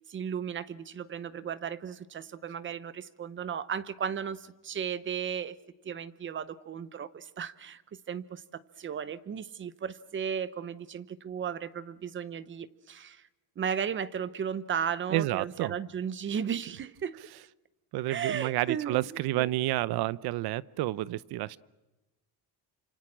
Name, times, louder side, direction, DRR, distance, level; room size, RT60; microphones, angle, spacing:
voice 1, 0.1-5.6 5.8-7.8 8.1-13.2 13.6-17.2 18.1-19.5, right 7 dB, 30° right, 16 dB, 0.8 m, -35 dB
voice 2, 15.1-15.8 17.9-21.6, right 16 dB, 70° right, 19 dB, 0.8 m, -30 dB
29.0 x 26.5 x 6.3 m, 1.1 s
cardioid pair, 165°, 40 cm